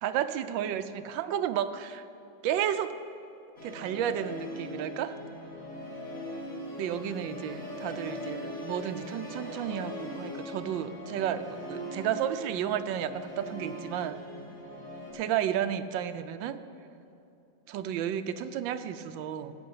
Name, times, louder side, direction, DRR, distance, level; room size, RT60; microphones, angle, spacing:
voice 1, 0.0-2.0 2.4-3.0 3.6-5.2 6.8-14.2 15.1-16.6 17.7-19.6, right 10 dB, 90° right, 11 dB, 1.4 m, -32 dB
Musical instrument, 3.6-15.1, left 1 dB, 40° left, 2.9 m, -40 dB
16.5 x 6.2 x 7.8 m, 2.6 s
omnidirectional pair, 2.0 m